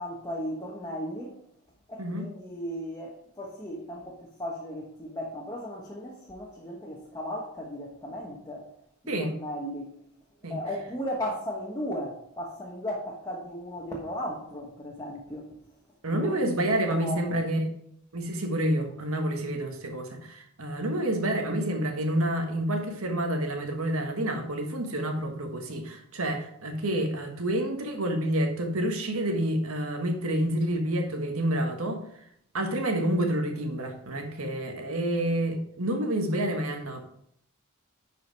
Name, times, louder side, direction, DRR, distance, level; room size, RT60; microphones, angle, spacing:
voice 1, 0.0-1.4 1.9-8.7 9.0-10.0 10.5-15.5 16.1-16.6 16.9-17.4, equal, 15° left, 1.3 m, -36 dB
voice 2, 16.0-17.7 18.1-32.0 32.5-37.0, right 1 dB, 75° right, 1.5 m, -28 dB
10.5 x 5.0 x 4.7 m
head